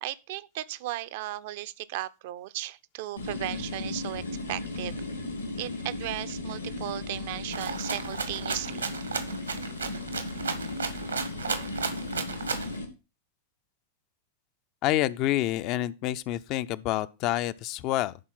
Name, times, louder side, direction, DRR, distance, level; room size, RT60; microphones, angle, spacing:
voice 1, 0.0-4.2 4.5-5.0 5.6-9.0, right 15 dB, 50° right, 0.5 m, -36 dB
sound 1, 3.2-12.8, left 2 dB, 80° left, 2.3 m, -36 dB
Rattle (instrument), 7.5-12.7, right 5 dB, 75° right, 1.2 m, -34 dB
voice 2, 14.8-18.2, left 14 dB, 40° left, 0.5 m, -28 dB
11.0 x 4.4 x 5.7 m
figure-of-eight pair, 90°, 0 cm